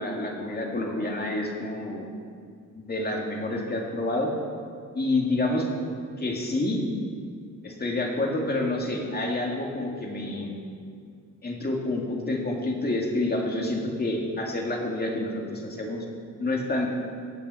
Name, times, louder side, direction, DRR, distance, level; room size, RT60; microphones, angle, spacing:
voice 1, 0.0-2.1 2.7-4.3 4.9-5.6 6.2-6.8 7.6-10.6 11.4-16.0 16.4-16.9, left 2 dB, 30° left, 0 dB, 2.4 m, -28 dB
18.0 x 7.3 x 5.8 m, 2.2 s
cardioid pair, 115°, 33 cm